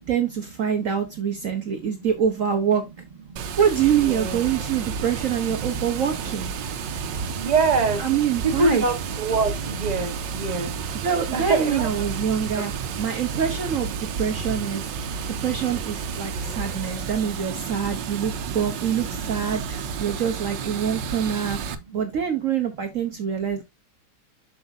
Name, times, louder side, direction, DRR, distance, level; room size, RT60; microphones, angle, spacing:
voice 1, 0.0-2.8 3.6-6.5 8.0-8.8 11.0-12.7 13.0-14.8 15.3-21.6 21.9-23.6, right 8 dB, 55° right, 1.2 m, -25 dB
voice 2, 1.5-1.9 3.3-3.5 4.0-4.9 6.7-8.1 8.4-10.7 11.3-11.9 12.5-12.7 15.0-15.5 22.0-22.1 23.2-23.6, right 4 dB, 25° right, 1.2 m, -28 dB
Water, 3.4-21.7, right 6 dB, 90° right, 1.5 m, -31 dB
7.7 x 6.2 x 2.6 m
omnidirectional pair, 1.9 m